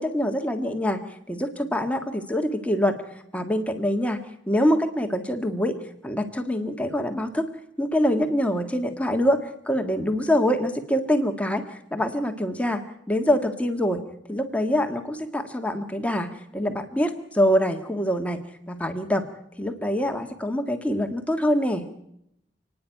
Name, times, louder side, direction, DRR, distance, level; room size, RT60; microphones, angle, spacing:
voice 1, 0.0-3.0 3.3-4.2 4.5-5.8 6.0-7.5 7.8-12.8 13.1-19.3 19.6-21.8, equal, 5° left, 6 dB, 1.7 m, -25 dB
29.5 x 10.0 x 9.1 m, 0.77 s
head